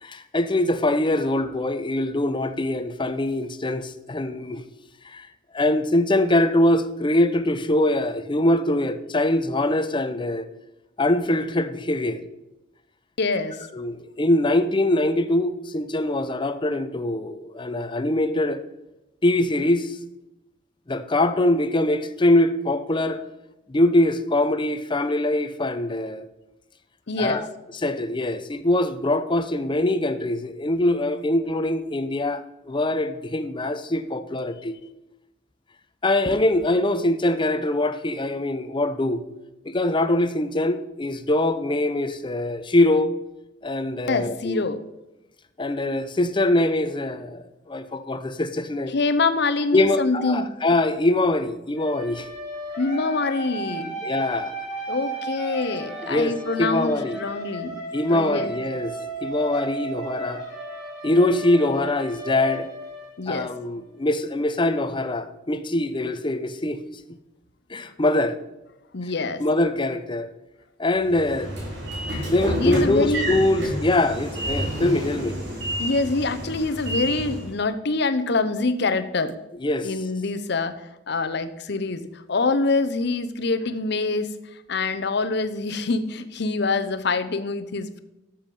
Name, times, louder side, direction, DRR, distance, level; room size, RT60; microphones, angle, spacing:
voice 1, 0.0-4.6 5.0-5.3 5.5-10.5 11.0-12.2 13.7-18.6 19.2-20.0 20.9-23.2 23.7-26.3 27.2-27.5 27.8-34.7 36.0-39.3 39.6-43.1 43.6-44.6 45.6-48.9 49.7-52.3 54.0-54.6 56.0-57.2 57.9-60.5 61.0-62.7 63.3-66.8 67.7-68.4 69.4-70.3 70.8-71.5 72.3-75.4 79.6-79.9, left 1 dB, 25° left, 0.7 m, -23 dB
voice 2, 13.2-13.7 27.1-27.4 44.1-44.8 48.9-50.5 52.8-53.9 54.9-57.8 58.1-58.6 63.2-63.5 68.9-69.4 72.6-73.3 75.8-79.4 79.8-88.0, left 3 dB, 60° left, 0.8 m, -25 dB
sound 1, 51.8-63.6, right 2 dB, 5° right, 3.5 m, -34 dB
Train / Sliding door, 71.0-77.5, equal, 60° right, 3.8 m, -29 dB
12.0 x 7.3 x 5.3 m
head